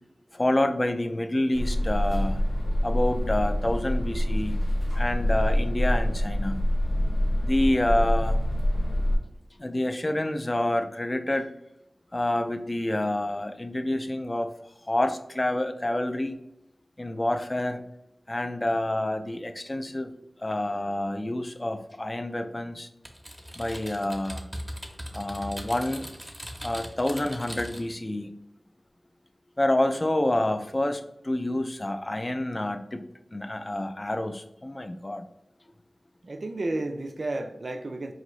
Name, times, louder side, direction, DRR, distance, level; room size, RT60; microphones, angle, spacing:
voice 1, 0.3-2.4 2.8-4.6 4.9-6.6 7.4-8.4 9.6-11.5 12.1-14.5 14.8-16.4 17.0-17.8 18.3-20.1 20.4-22.9 23.6-24.5 25.1-26.1 26.6-28.3 29.6-33.0 33.3-35.2, left 1 dB, 30° left, 8 dB, 0.4 m, -28 dB
sound 1, 1.5-9.2, equal, 85° left, 0.6 m, -25 dB
Typing, 23.0-28.0, equal, 5° right, 0.7 m, -39 dB
voice 2, 36.2-38.1, right 2 dB, 60° right, 5 dB, 0.3 m, -32 dB
4.8 x 2.7 x 3.0 m, 0.82 s
wide cardioid pair, 80°, 0 cm